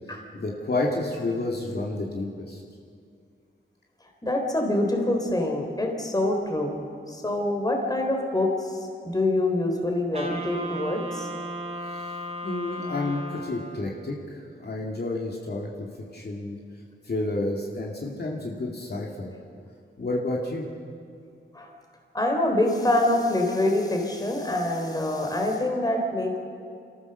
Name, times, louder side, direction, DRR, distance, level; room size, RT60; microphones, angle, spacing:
voice 1, 0.1-2.6 11.9-12.1 12.4-15.9 16.1-16.6 17.0-19.3 20.0-20.7, left 2 dB, 50° left, -3 dB, 2.5 m, -30 dB
voice 2, 4.2-11.3 21.5-21.7 22.1-26.4, left 1 dB, 20° left, 2 dB, 3.4 m, -25 dB
Wind instrument woodwind instrument, 10.1-14.0, right 1 dB, 30° right, 3.1 m, -35 dB
28.0 x 14.0 x 6.8 m, 2.3 s
wide cardioid pair, 125°, 21 cm